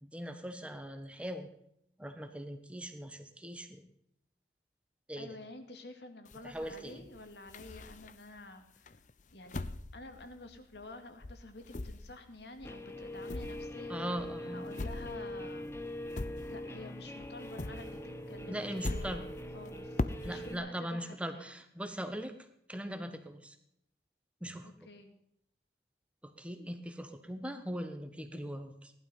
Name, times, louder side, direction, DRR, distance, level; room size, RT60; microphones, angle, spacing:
voice 1, 0.0-1.5 2.0-3.8 5.1-5.4 6.4-7.0 13.9-14.7 18.5-19.2 20.2-22.3 22.7-23.6 24.4-24.8 26.2-28.9, equal, 5° right, 7 dB, 1.4 m, -40 dB
voice 2, 5.2-9.0 9.3-14.0 14.5-16.2 16.5-18.0 18.3-21.6 24.6-25.1, left 2 dB, 70° left, 7 dB, 2.3 m, -50 dB
sound 1, 6.3-8.4 8.9-11.0 11.2-16.9 17.2-20.6, left 2 dB, 45° left, 0.7 m, -41 dB
Guitar, 12.6-20.5, left 1 dB, 15° left, 1.0 m, -43 dB
18.5 x 12.0 x 5.6 m, 0.75 s
head